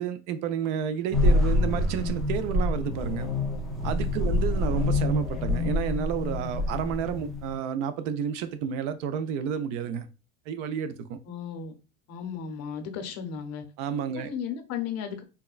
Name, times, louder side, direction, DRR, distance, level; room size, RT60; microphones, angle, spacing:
voice 1, 0.0-3.3 3.8-10.1 10.5-11.2 13.8-14.3, right 8 dB, 65° right, 0.6 m, -30 dB
sound 1, 1.1-7.6, left 2 dB, ahead, 0.3 m, -26 dB
voice 2, 11.2-11.7 12.1-13.6 14.2-15.2, left 7 dB, 40° left, 0.6 m, -35 dB
3.5 x 2.2 x 2.3 m
supercardioid pair, 130°, 38 cm